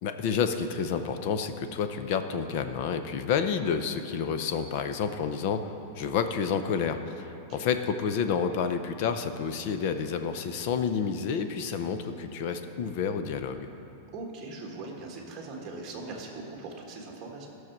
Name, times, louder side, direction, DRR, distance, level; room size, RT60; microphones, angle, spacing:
voice 1, 0.0-13.7, left 6 dB, 40° left, 8 dB, 0.6 m, -29 dB
voice 2, 7.3-7.6 14.1-17.5, right 3 dB, 20° right, -1 dB, 1.6 m, -40 dB
15.0 x 6.4 x 6.0 m, 2.9 s
supercardioid pair, 175°, 0 cm